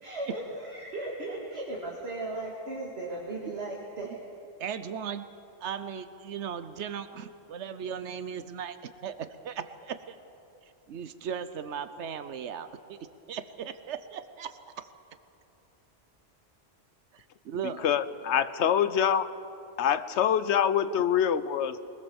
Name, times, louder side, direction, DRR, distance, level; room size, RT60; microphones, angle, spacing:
voice 1, 0.0-4.2, right 2 dB, 65° right, -2 dB, 2.5 m, -36 dB
voice 2, 4.6-5.3 5.6-10.2 10.6-14.9 17.1-17.9 21.3-21.4, right 7 dB, 90° right, 12 dB, 1.1 m, -37 dB
voice 3, 17.8-19.3 19.8-21.9, left 9 dB, 85° left, 14 dB, 1.1 m, -25 dB
22.5 x 20.0 x 7.1 m, 2.8 s
omnidirectional pair, 1.1 m